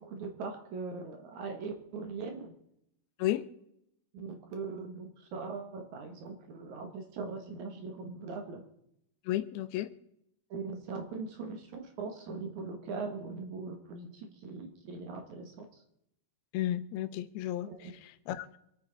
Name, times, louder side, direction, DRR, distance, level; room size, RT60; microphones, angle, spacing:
voice 1, 0.0-2.5 4.1-8.6 10.5-15.7 17.6-18.0, right 4 dB, 60° right, 2.3 m, -40 dB
voice 2, 9.3-9.9 16.5-18.6, left 13 dB, 80° left, 2.6 m, -33 dB
25.0 x 9.1 x 3.9 m
omnidirectional pair, 4.4 m